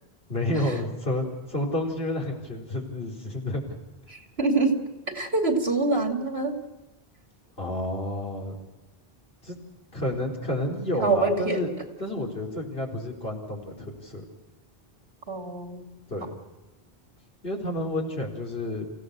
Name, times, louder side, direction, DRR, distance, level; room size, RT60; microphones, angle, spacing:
voice 1, 0.3-3.6 7.6-8.6 9.4-9.6 9.9-11.7 12.0-14.2 16.1-16.4 17.4-18.9, left 1 dB, 70° left, -1 dB, 4.5 m, -30 dB
voice 2, 4.1-4.8 5.1-6.6 11.0-11.6 15.3-15.9, right 3 dB, 80° right, 3 dB, 3.0 m, -25 dB
28.0 x 16.5 x 6.7 m, 1.1 s
omnidirectional pair, 1.0 m